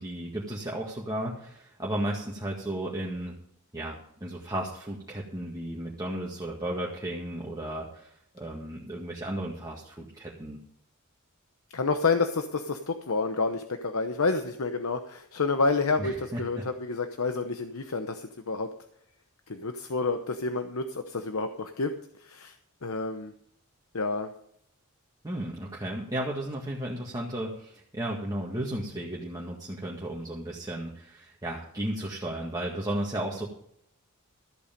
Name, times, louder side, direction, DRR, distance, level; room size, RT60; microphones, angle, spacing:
voice 1, 0.0-3.3 3.7-10.6 16.0-16.6 25.2-33.5, right 1 dB, 20° right, -3 dB, 1.8 m, -34 dB
voice 2, 11.7-18.7 19.5-22.6 22.8-23.3 23.9-24.3, left 3 dB, 75° left, 7 dB, 0.9 m, -29 dB
14.0 x 8.4 x 5.2 m, 0.71 s
head